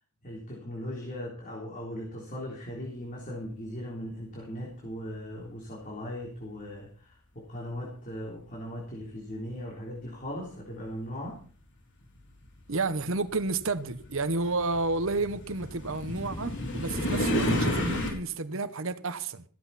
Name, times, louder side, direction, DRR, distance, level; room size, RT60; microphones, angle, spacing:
voice 1, 0.2-11.4, equal, 35° left, 3.5 m, -38 dB
sound 1, 10.9-11.0 12.0-18.1, left 1 dB, 55° left, 4.4 m, -31 dB
voice 2, 12.7-19.4, right 3 dB, 60° right, 1.1 m, -31 dB
15.0 x 14.0 x 4.2 m
head